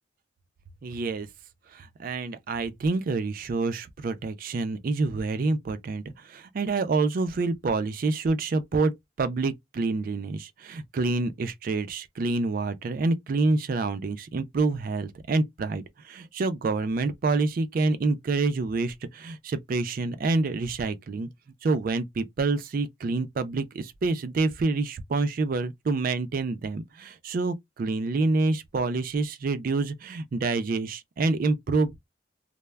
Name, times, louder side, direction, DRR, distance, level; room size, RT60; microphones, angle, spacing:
voice 1, 0.8-1.3 1.7-8.9 9.2-21.3 21.6-32.1, right 3 dB, 45° right, 0.3 m, -27 dB
2.2 x 2.0 x 3.2 m
head